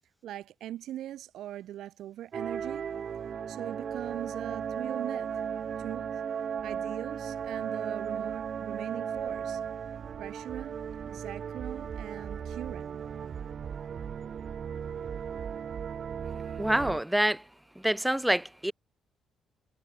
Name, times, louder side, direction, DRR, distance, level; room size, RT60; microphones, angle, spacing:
voice 1, 0.2-2.9 3.5-5.3 5.8-6.1 6.6-9.6 10.2-10.8 11.0-13.0, right 12 dB, 80° right, 2.6 m, -41 dB
sound 1, 2.3-17.0, right 7 dB, 55° right, 3.4 m, -36 dB
voice 2, 16.6-17.4 17.8-18.7, right 1 dB, 5° right, 0.5 m, -26 dB
cardioid pair, 90°, 0 cm